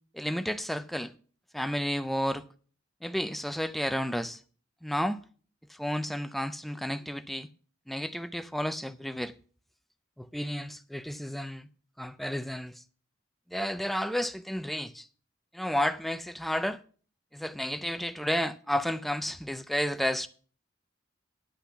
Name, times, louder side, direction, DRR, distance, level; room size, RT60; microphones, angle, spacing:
voice 1, 0.1-1.1 1.5-2.4 3.0-4.4 4.8-5.2 5.7-7.5 7.9-9.3 10.2-11.7 12.0-12.7 13.5-15.1 15.5-16.8 17.3-20.3, equal, ahead, 0.4 m, -31 dB
10.0 x 5.9 x 8.0 m
head